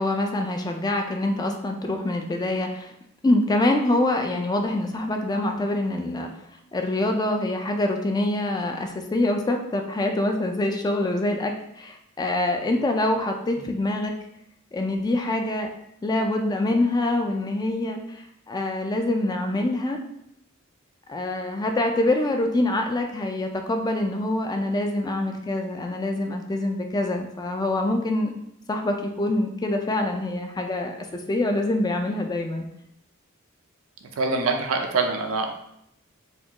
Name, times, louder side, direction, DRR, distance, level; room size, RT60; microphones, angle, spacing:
voice 1, 0.0-2.9 3.2-6.3 6.7-14.1 14.7-15.7 16.0-20.0 21.1-28.3 28.7-32.6, left 1 dB, 20° left, 4 dB, 0.3 m, -25 dB
voice 2, 34.2-35.5, right 3 dB, 75° right, 4 dB, 0.5 m, -24 dB
4.2 x 2.3 x 2.9 m, 0.76 s
head